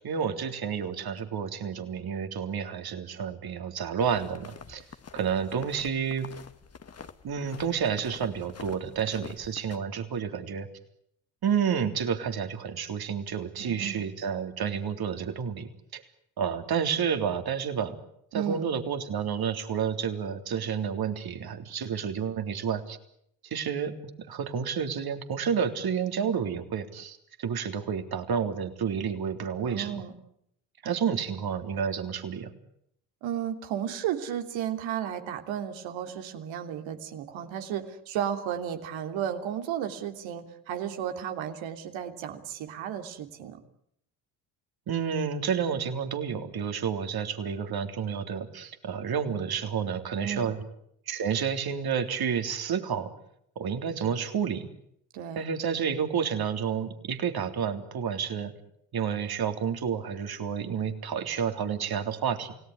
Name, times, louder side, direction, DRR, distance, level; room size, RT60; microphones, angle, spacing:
voice 1, 0.0-4.8 5.1-6.3 7.2-10.7 11.4-16.0 16.4-18.0 18.3-23.0 23.5-23.9 24.3-30.0 30.8-32.5 44.9-50.6 51.1-53.1 53.6-54.7 55.4-58.5 58.9-62.5, right 7 dB, 50° right, 7 dB, 3.6 m, -30 dB
sound 1, 4.0-9.8, left 6 dB, 30° left, 1.9 m, -46 dB
voice 2, 13.6-14.0 18.3-18.7 29.6-30.1 33.2-43.6 50.2-50.5 55.1-55.4, right 9 dB, 70° right, 6 dB, 3.3 m, -33 dB
29.0 x 18.0 x 9.9 m, 0.73 s
hypercardioid pair, 65°, 47 cm